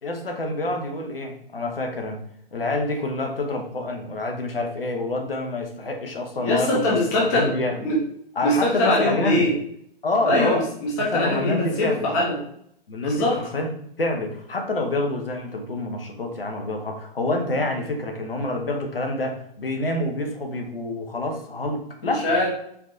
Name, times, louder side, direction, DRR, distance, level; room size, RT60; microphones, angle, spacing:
voice 1, 0.0-2.2 2.5-7.8 8.4-9.4 10.0-10.6 11.0-12.1 12.9-13.7 14.0-22.3, left 2 dB, 70° left, 3 dB, 0.8 m, -27 dB
voice 2, 6.4-7.5 7.8-8.0 8.4-9.5 10.2-12.4 13.0-13.4 22.0-22.5, left 1 dB, 15° left, -3 dB, 0.5 m, -22 dB
4.5 x 2.6 x 2.6 m, 0.69 s
figure-of-eight pair, 125°, 30 cm